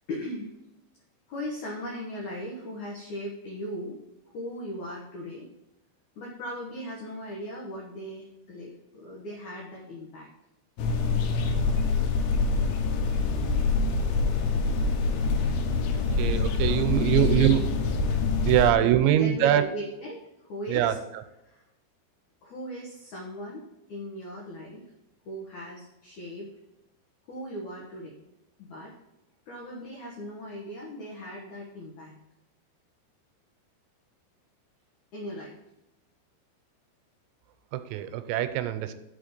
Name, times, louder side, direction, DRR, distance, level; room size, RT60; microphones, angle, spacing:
voice 1, 0.1-0.5 1.3-4.0 4.3-5.5 6.2-10.3 16.6-17.6 18.5-21.0 21.4-21.6 22.4-23.6 23.9-24.8 25.3-26.5 27.3-28.2 28.6-28.9 29.5-32.2 35.1-35.6, equal, 70° left, -2 dB, 1.9 m, -38 dB
sound 1, 10.8-18.7, left 4 dB, 85° left, 3.3 m, -25 dB
voice 2, 16.1-17.6 18.4-19.6 20.7-21.2 37.7-38.9, right 12 dB, 85° right, 10 dB, 2.9 m, -23 dB
6.4 x 5.5 x 6.6 m, 0.93 s
omnidirectional pair, 5.3 m